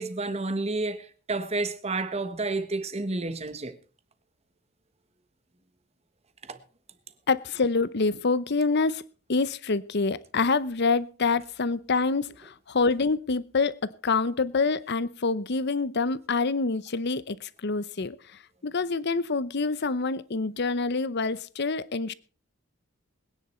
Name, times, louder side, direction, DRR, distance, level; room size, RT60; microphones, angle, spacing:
voice 1, 0.0-3.8 6.5-6.6, right 3 dB, 30° right, 1.3 m, -30 dB
voice 2, 7.3-9.0 9.3-18.2 18.6-22.1, left 4 dB, 55° left, 0.8 m, -26 dB
21.5 x 10.0 x 4.4 m
head